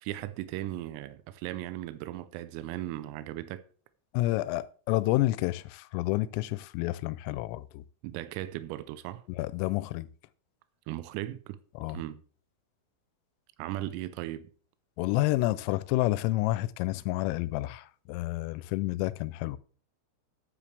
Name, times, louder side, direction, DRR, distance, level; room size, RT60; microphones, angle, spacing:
voice 1, 0.0-3.6 8.0-9.2 10.9-11.6 11.9-12.2 13.6-14.5, right 14 dB, 90° right, 3.4 m, -37 dB
voice 2, 4.1-7.8 9.4-10.1 11.8-12.0 15.0-19.6, left 17 dB, 85° left, 3.2 m, -29 dB
10.0 x 9.8 x 3.3 m
omnidirectional pair, 5.9 m